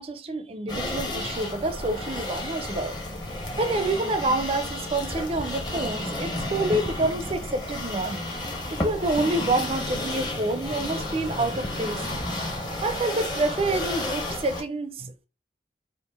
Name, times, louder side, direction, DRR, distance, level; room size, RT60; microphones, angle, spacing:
voice 1, 0.0-3.0 3.6-8.2 8.7-12.1 12.8-15.3, right 2 dB, 30° right, 0.4 m, -28 dB
sound 1, 0.7-14.6, left 1 dB, 25° left, 0.8 m, -32 dB
4.8 x 2.5 x 3.4 m
head